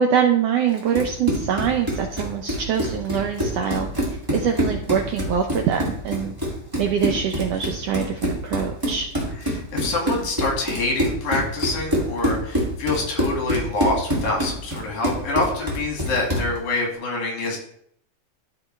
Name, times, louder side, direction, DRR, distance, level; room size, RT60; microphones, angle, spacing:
voice 1, 0.0-6.3 6.8-9.1, right 8 dB, 80° right, 4 dB, 1.5 m, -24 dB
Run, 0.7-16.6, equal, 10° right, 1.5 m, -26 dB
voice 2, 9.5-17.6, left 3 dB, 75° left, -1 dB, 3.4 m, -26 dB
13.0 x 4.4 x 3.2 m, 0.68 s
omnidirectional pair, 3.5 m